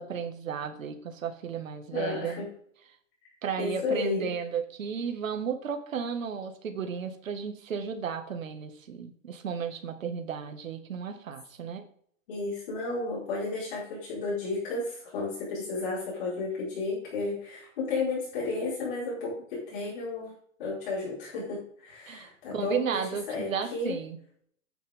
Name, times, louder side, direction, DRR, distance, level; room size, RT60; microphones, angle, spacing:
voice 1, 0.0-2.4 3.4-11.9 22.1-24.2, right 7 dB, 80° right, 7 dB, 1.9 m, -34 dB
voice 2, 1.9-2.5 3.6-4.3 12.3-20.3 20.6-24.0, left 3 dB, 40° left, -7 dB, 4.9 m, -33 dB
11.0 x 9.4 x 3.6 m, 0.63 s
hypercardioid pair, 170°, 39 cm